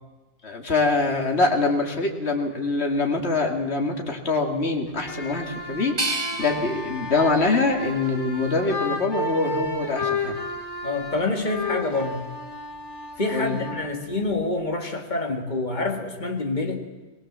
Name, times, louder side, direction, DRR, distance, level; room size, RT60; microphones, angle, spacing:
voice 1, 0.4-10.4 13.3-13.6, left 3 dB, 65° left, 2 dB, 2.9 m, -24 dB
sound 1, 4.9-14.7, left 2 dB, 20° left, 3.9 m, -33 dB
sound 2, 6.0-8.9 9.4-10.3, right 2 dB, 60° right, 3.5 m, -34 dB
voice 2, 10.8-12.2 13.2-16.9, left 2 dB, 40° left, 3 dB, 2.5 m, -27 dB
22.0 x 21.0 x 7.6 m, 1.2 s
omnidirectional pair, 1.2 m